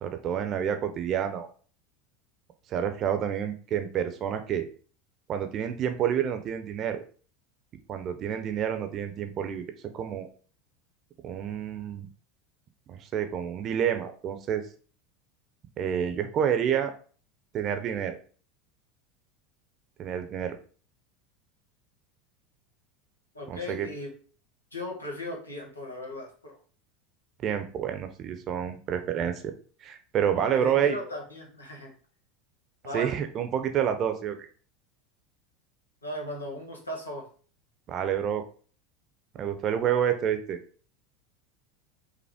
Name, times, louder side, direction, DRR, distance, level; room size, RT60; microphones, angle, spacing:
voice 1, 0.0-1.5 2.7-4.7 5.3-7.0 7.9-9.6 9.9-10.3 11.2-12.1 12.9-14.6 15.8-16.9 17.5-18.2 20.0-20.6 23.5-23.9 27.4-29.5 29.8-31.0 32.9-34.4 37.9-38.4 39.4-40.6, right 9 dB, 40° right, 7 dB, 0.7 m, -28 dB
voice 2, 23.3-24.1 24.7-26.6 30.3-31.9 32.8-33.1 36.0-37.3, left 1 dB, 90° left, 0 dB, 1.2 m, -37 dB
5.4 x 2.1 x 3.5 m, 0.42 s
figure-of-eight pair, 80°, 0 cm